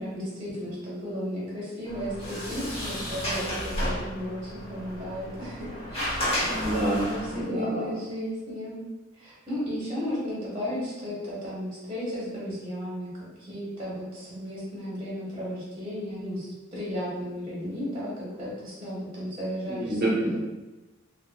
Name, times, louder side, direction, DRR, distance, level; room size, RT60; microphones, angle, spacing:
voice 1, 0.0-8.8 9.2-13.1 13.4-20.1, equal, 25° right, -8 dB, 1.0 m, -34 dB
Sliding door, 1.8-7.4, left 1 dB, 30° left, 0.8 m, -32 dB
voice 2, 6.4-8.0 19.7-20.4, right 1 dB, 50° right, -3 dB, 0.6 m, -28 dB
2.8 x 2.5 x 2.3 m, 1.1 s
head